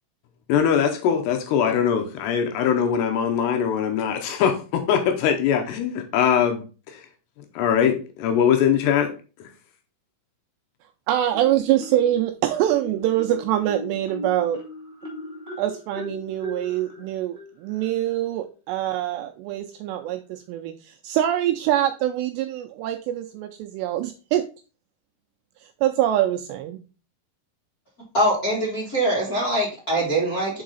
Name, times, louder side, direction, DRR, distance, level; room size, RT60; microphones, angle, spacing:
voice 1, 0.5-7.1 7.4-9.1 9.4-9.5, left 8 dB, 75° left, 4 dB, 2.6 m, -22 dB
voice 2, 11.1-14.6 15.6-24.4 25.6-26.8, right 12 dB, 85° right, 5 dB, 2.4 m, -24 dB
Marimba xylophone, 11.3-12.2 12.7-18.2, left 2 dB, 25° right, 1.1 m, -38 dB
voice 3, 28.1-30.6, right 1 dB, 55° left, -6 dB, 1.0 m, -23 dB
6.3 x 4.7 x 3.9 m, 0.35 s
omnidirectional pair, 5.3 m